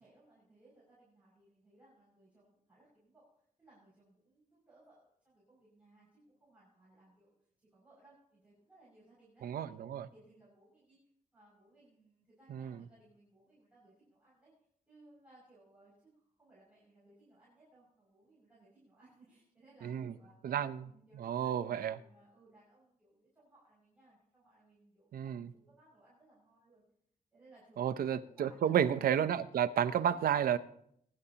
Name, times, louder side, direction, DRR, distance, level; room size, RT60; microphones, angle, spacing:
voice 1, 0.0-3.3 3.6-11.0 11.3-14.5 14.9-20.4 20.8-26.8 27.3-29.1 29.8-30.6, right 2 dB, 10° right, -8 dB, 6.1 m, -64 dB
voice 2, 9.4-10.1 12.5-12.8 19.8-20.1 20.4-20.9 21.2-22.0 25.1-25.5 27.8-30.6, right 9 dB, 80° right, 12 dB, 0.6 m, -32 dB
23.0 x 11.0 x 2.9 m, 0.69 s
wide cardioid pair, 160°, 15 cm